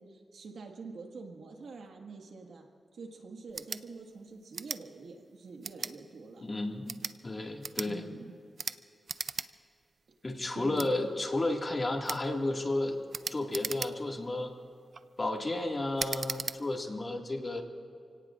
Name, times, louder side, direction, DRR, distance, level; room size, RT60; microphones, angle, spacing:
voice 1, 0.0-6.4 7.9-8.3 10.5-10.9, right 4 dB, 90° right, 2 dB, 1.8 m, -46 dB
sound 1, 3.5-3.8 4.5-4.8 5.6-5.9 6.7-7.2 7.6-7.9 8.6-8.8 9.1-9.5 9.8-9.9 10.7-10.9 12.0-12.2 13.1-14.2 14.7-15.0 16.0-16.6, right 5 dB, 70° right, 0.4 m, -37 dB
voice 2, 6.4-8.1 10.2-13.0 13.3-14.5 15.2-17.6, left 2 dB, 40° left, 2 dB, 2.0 m, -32 dB
29.0 x 18.0 x 2.5 m, 2.4 s
cardioid pair, 55°, 0 cm